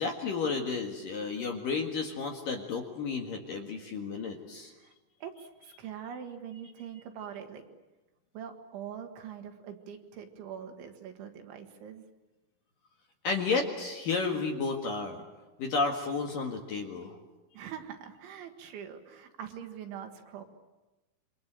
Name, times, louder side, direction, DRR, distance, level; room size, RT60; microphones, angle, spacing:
voice 1, 0.0-4.7 13.2-15.2 15.6-17.2, left 4 dB, 55° left, 2 dB, 2.8 m, -32 dB
voice 2, 4.6-4.9 5.2-7.6 8.3-12.0 17.5-20.4, right 8 dB, 70° right, 5 dB, 4.0 m, -43 dB
28.0 x 25.5 x 7.7 m, 1.1 s
omnidirectional pair, 5.9 m